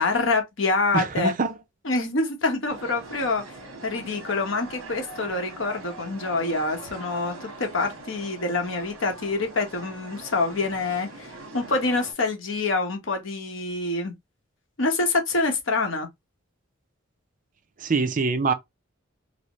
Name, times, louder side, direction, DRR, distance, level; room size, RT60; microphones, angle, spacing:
voice 1, 0.0-1.3 1.8-3.4 3.8-11.3 11.5-14.1 14.8-16.1, left 3 dB, 65° left, 0.9 m, -26 dB
voice 2, 0.9-1.6 17.8-18.5, right 4 dB, 40° right, 0.5 m, -24 dB
sound 1, 2.7-12.1, right 2 dB, 70° right, 1.2 m, -42 dB
4.1 x 2.1 x 2.9 m
head